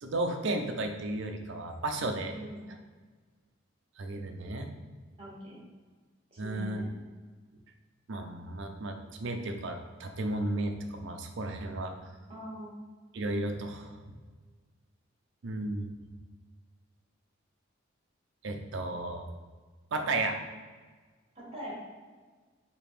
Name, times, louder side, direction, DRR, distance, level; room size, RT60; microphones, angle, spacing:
voice 1, 0.0-2.3 4.0-4.7 6.4-6.8 8.1-11.9 13.1-14.1 15.4-15.9 18.4-19.3 19.9-20.4, right 2 dB, 65° right, 5 dB, 0.5 m, -34 dB
voice 2, 5.2-5.6 6.3-6.9 12.3-12.7 21.3-21.7, equal, 30° right, -5 dB, 1.5 m, -42 dB
5.0 x 2.9 x 3.2 m, 1.4 s
head